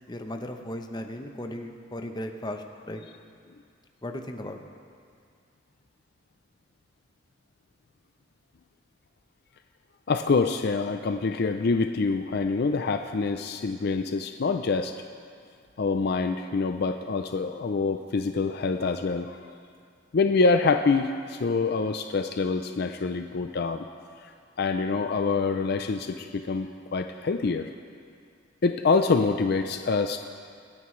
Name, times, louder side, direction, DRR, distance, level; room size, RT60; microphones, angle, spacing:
voice 1, 0.1-3.0 4.0-4.6, left 1 dB, 20° left, 4 dB, 0.8 m, -36 dB
voice 2, 10.1-14.9 15.8-19.4 20.1-23.8 24.6-27.7 28.6-30.2, left 4 dB, 55° left, 7 dB, 0.4 m, -26 dB
25.0 x 9.4 x 3.2 m, 2.3 s
head